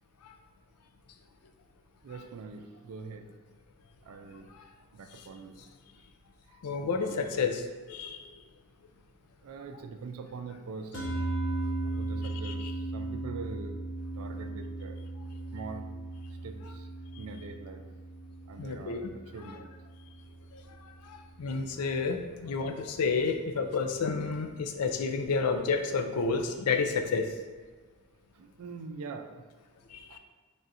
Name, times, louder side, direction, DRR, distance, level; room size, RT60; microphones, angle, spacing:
voice 1, 2.0-3.3 4.0-4.5 4.9-5.6 6.5-7.5 9.4-11.2 11.8-13.8 14.1-15.0 15.5-15.9 16.4-16.9 17.2-17.8 18.5-19.7 20.3-20.4 28.3-29.4 30.1-30.2, right 4 dB, 70° right, 7 dB, 0.4 m, -43 dB
voice 2, 6.6-8.2 12.4-12.7 18.6-19.0 19.6-19.7 20.5-20.6 21.0-27.3 29.9-30.2, left 4 dB, 90° left, 6 dB, 0.4 m, -30 dB
sound 1, 10.9-21.4, right 2 dB, 55° left, 0.8 m, -37 dB
3.5 x 2.5 x 4.1 m, 1.4 s
head